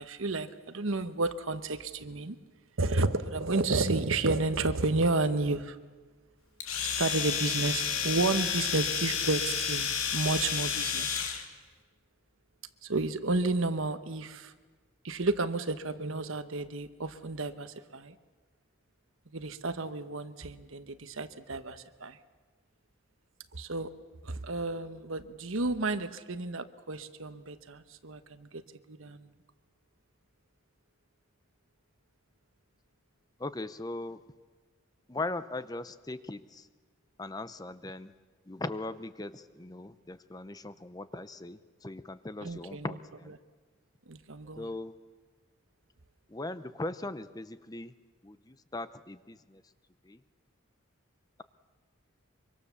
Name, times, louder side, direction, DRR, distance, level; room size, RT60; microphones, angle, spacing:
voice 1, 0.0-2.4 2.8-5.8 7.0-11.1 12.8-14.5 15.0-18.1 19.3-22.2 23.5-23.9 24.2-28.6 28.9-29.3 42.4-43.0 44.1-44.7, right 3 dB, 75° right, 11 dB, 1.2 m, -31 dB
Domestic sounds home sounds, 6.6-11.4, left 7 dB, 85° left, 2.6 m, -31 dB
voice 2, 33.4-34.2 35.1-36.7 37.2-38.1 38.5-43.3 44.6-44.9 46.3-47.9 48.2-49.6 50.1-50.2, left 2 dB, 20° left, 13 dB, 0.6 m, -39 dB
24.5 x 24.5 x 7.1 m, 1.4 s
head